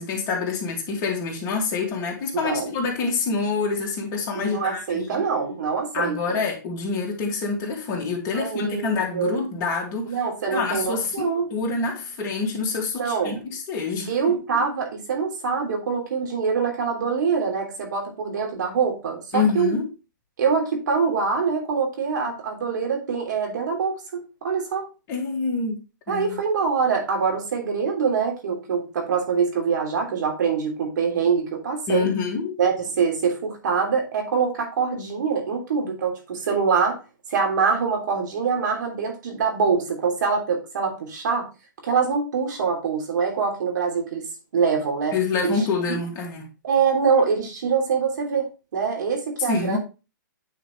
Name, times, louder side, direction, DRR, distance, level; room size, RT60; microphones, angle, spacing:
voice 1, 0.0-5.2 5.9-10.2 10.5-14.4 19.3-19.9 25.1-25.8 26.1-26.4 31.9-32.6 45.1-46.5 49.5-49.8, left 4 dB, 30° left, -1 dB, 2.5 m, -26 dB
voice 2, 2.3-2.7 4.3-6.4 8.3-9.4 10.0-11.5 13.0-13.4 14.1-19.8 20.4-24.9 26.1-32.1 32.6-37.0 37.3-41.5 41.8-44.2 44.5-45.1 45.4-46.0 46.6-49.8, right 5 dB, 65° right, 2 dB, 3.1 m, -24 dB
9.2 x 5.0 x 3.2 m, 0.30 s
hypercardioid pair, 145°, 11 cm